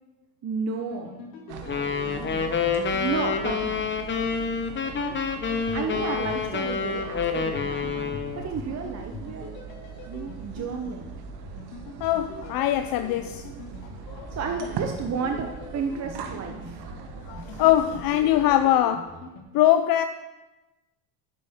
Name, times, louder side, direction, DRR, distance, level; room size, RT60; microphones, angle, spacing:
voice 1, 0.4-1.1 1.7-2.5 3.0-3.8 5.7-9.5 10.1-11.1 14.3-16.9, right 5 dB, 35° right, 0.8 m, -32 dB
sound 1, 0.9-4.2 5.5-19.4, left 3 dB, 80° left, 2.2 m, -43 dB
sound 2, 1.5-18.7, right 7 dB, 55° right, 1.1 m, -41 dB
sound 3, 1.7-8.5, left 5 dB, 25° left, 0.9 m, -28 dB
voice 2, 12.0-13.5 14.1-14.3 17.3-19.1 19.5-20.0, left 12 dB, 50° left, 0.5 m, -22 dB
9.9 x 6.8 x 3.6 m
supercardioid pair, 85°, 46 cm